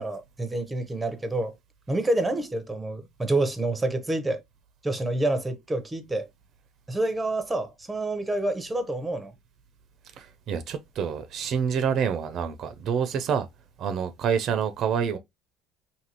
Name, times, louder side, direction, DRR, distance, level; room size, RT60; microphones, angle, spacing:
voice 1, 0.0-1.5 1.9-4.4 4.8-6.3 6.9-9.3, right 2 dB, 10° right, 0.6 m, -28 dB
voice 2, 10.2-13.5 13.8-15.2, right 7 dB, 55° right, 0.5 m, -27 dB
2.7 x 2.6 x 2.8 m
supercardioid pair, 85°, 0 cm